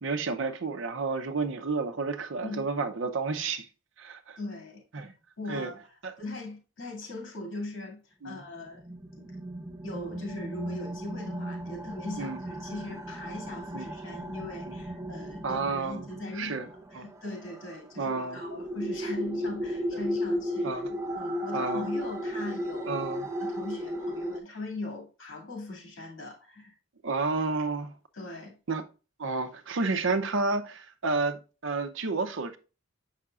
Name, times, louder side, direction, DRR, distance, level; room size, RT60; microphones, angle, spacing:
voice 1, 0.0-3.7 4.0-4.4 4.9-5.1 5.5-5.7 6.0-6.1 8.2-8.4 12.2-12.4 13.7-13.9 14.7-14.8 15.4-16.1 16.3-16.7 16.9-17.1 18.0-18.4 20.6-20.9 21.5-21.8 22.9-23.3 27.0-27.9 28.7-28.8 29.2-32.6, right 3 dB, 70° right, 0.7 m, -31 dB
voice 2, 4.4-8.8 9.2-9.3 9.8-26.7 28.1-28.5, left 2 dB, 80° left, 2.3 m, -40 dB
sound 1, 8.6-24.4, equal, 15° right, 0.5 m, -35 dB
6.9 x 5.7 x 2.4 m
head